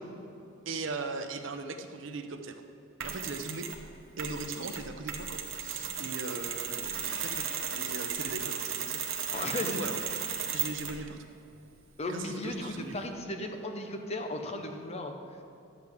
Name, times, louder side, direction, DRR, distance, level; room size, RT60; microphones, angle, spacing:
voice 1, 0.7-2.6 3.0-3.7 4.2-7.5 7.7-9.3 9.6-9.9 10.5-11.2 12.1-13.0, right 3 dB, 65° right, 7 dB, 0.7 m, -39 dB
Mechanisms, 3.0-3.8 4.2-11.0, right 7 dB, 90° right, 1.0 m, -35 dB
voice 2, 9.2-10.0 12.0-15.1, left 2 dB, 35° left, 5 dB, 0.8 m, -36 dB
12.0 x 7.8 x 3.6 m, 2.9 s
head